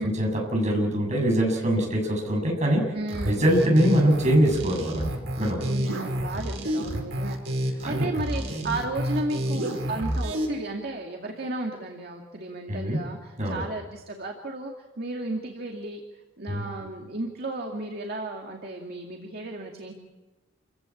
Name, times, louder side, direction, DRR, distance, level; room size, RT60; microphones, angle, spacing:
voice 1, 0.0-2.8 3.2-5.6 7.8-8.1 12.7-13.0 13.4-13.6 16.5-16.6, equal, 40° right, 0 dB, 7.2 m, -23 dB
voice 2, 2.9-3.5 5.6-16.0 16.4-19.9, right 2 dB, 55° right, 2 dB, 2.2 m, -34 dB
sound 1, 3.1-10.5, equal, 80° right, 5.2 m, -29 dB
28.0 x 16.0 x 8.6 m, 1.2 s
head